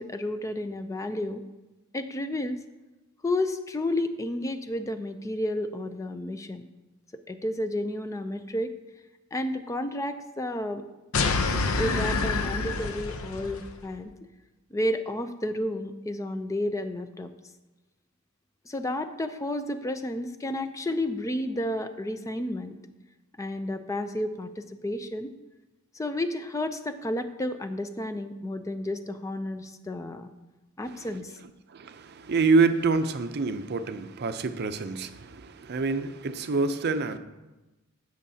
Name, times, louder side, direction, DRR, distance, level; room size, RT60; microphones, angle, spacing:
voice 1, 0.0-1.4 1.9-2.6 3.2-6.6 7.3-8.7 9.3-10.8 11.8-14.1 14.7-17.3 18.7-22.8 23.4-25.3 25.9-30.3 30.8-31.3, left 1 dB, 15° left, 9 dB, 0.4 m, -31 dB
sound 1, 11.1-13.7, left 3 dB, 75° left, 0.6 m, -27 dB
voice 2, 31.7-37.2, right 4 dB, 50° right, 10 dB, 0.5 m, -26 dB
15.5 x 6.4 x 2.8 m, 1.1 s
head